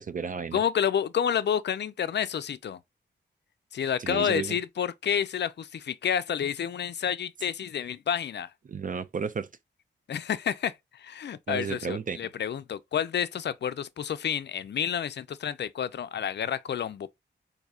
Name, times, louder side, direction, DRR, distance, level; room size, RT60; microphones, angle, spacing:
voice 1, 0.0-0.6 4.0-4.6 8.7-9.5 11.5-12.2, right 6 dB, 45° right, 0.4 m, -33 dB
voice 2, 0.5-2.8 3.7-8.5 10.1-17.1, left 8 dB, 65° left, 0.4 m, -29 dB
4.2 x 2.7 x 2.3 m
wide cardioid pair, 80°, 19 cm